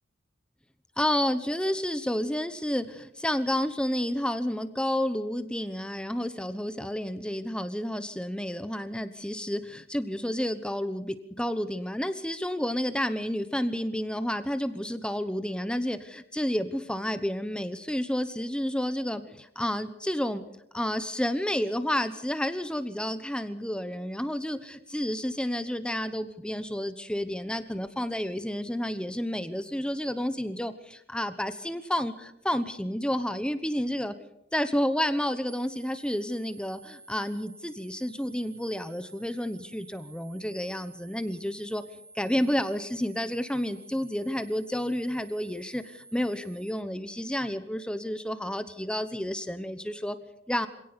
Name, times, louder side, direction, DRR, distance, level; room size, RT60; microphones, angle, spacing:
voice 1, 1.0-20.4 20.7-34.1 34.5-41.8 42.1-50.2 50.5-50.7, equal, 5° left, 11 dB, 1.0 m, -30 dB
sound 1, 35.5-46.7, right 2 dB, 35° right, 3.6 m, -52 dB
26.0 x 18.0 x 6.9 m, 0.77 s
head